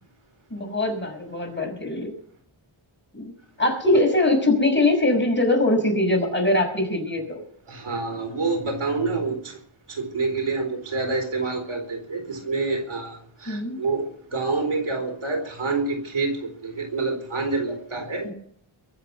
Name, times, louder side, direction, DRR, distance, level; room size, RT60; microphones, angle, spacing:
voice 1, 0.5-2.1 3.1-3.3 3.6-7.4 13.5-13.8 18.2-18.3, left 2 dB, 20° left, 2 dB, 5.8 m, -22 dB
voice 2, 7.7-9.6 9.9-18.3, right 3 dB, 85° right, 3 dB, 4.3 m, -27 dB
22.5 x 7.8 x 6.9 m, 0.65 s
wide cardioid pair, 105°, 48 cm